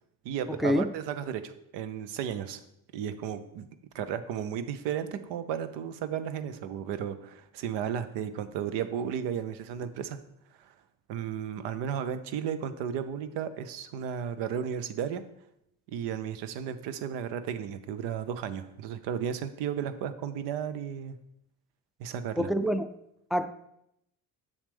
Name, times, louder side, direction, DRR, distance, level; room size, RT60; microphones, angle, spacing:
voice 1, 0.2-2.6 2.9-3.7 3.9-10.2 10.6-10.7 11.1-15.2 15.9-21.2 22.0-22.5, right 8 dB, 75° right, 12 dB, 0.7 m, -34 dB
voice 2, 22.4-22.9 23.3-23.5, equal, ahead, 8 dB, 0.3 m, -26 dB
7.1 x 6.5 x 3.4 m, 0.79 s
hypercardioid pair, 60°, 43 cm